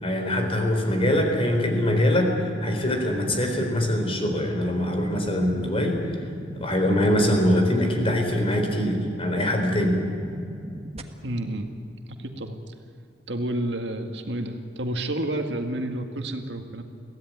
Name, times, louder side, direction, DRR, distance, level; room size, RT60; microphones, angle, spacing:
voice 1, 0.0-6.0 6.6-10.0, left 1 dB, 30° left, 3 dB, 4.1 m, -23 dB
sound 1, 1.0-11.0, equal, 35° right, 1.5 m, -38 dB
voice 2, 11.2-11.7 12.2-12.6 13.3-16.8, right 1 dB, 70° right, 5 dB, 1.9 m, -30 dB
23.0 x 16.5 x 9.5 m, 2.6 s
head